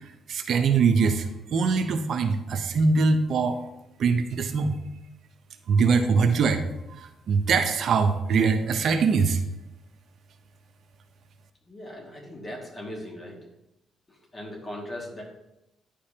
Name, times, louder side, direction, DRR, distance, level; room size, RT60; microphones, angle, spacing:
voice 1, 0.3-1.2 1.5-3.6 4.0-4.7 5.7-6.7 7.0-9.4, right 5 dB, 65° right, 7 dB, 0.7 m, -22 dB
voice 2, 11.7-13.4 14.1-15.2, left 1 dB, 30° left, -1 dB, 2.0 m, -39 dB
9.6 x 5.1 x 2.8 m, 0.90 s
cardioid pair, 90°, 0 cm